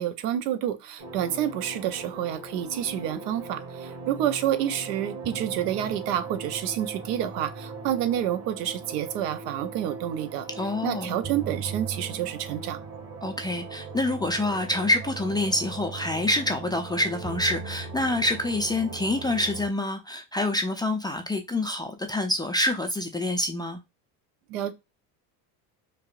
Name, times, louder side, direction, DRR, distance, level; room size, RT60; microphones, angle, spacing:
voice 1, 0.0-10.5 10.8-12.8 24.5-24.7, right 11 dB, 80° right, 0.7 m, -29 dB
sound 1, 1.0-19.7, right 4 dB, 35° right, 1.5 m, -39 dB
voice 2, 10.6-11.1 13.2-23.8, left 1 dB, 10° left, 0.3 m, -27 dB
5.2 x 2.1 x 2.4 m
hypercardioid pair, 80°, 48 cm